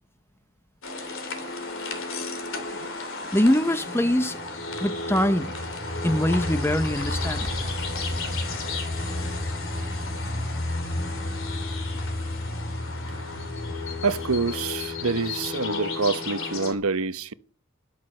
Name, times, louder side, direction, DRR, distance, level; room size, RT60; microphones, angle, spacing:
sound 1, 0.8-16.7, left 2 dB, 65° left, 3.2 m, -31 dB
voice 1, 3.3-4.4 4.8-5.5 6.0-7.5, left 1 dB, 10° left, 0.8 m, -23 dB
voice 2, 14.0-17.3, right 4 dB, 80° right, 0.9 m, -27 dB
12.5 x 11.0 x 6.6 m
head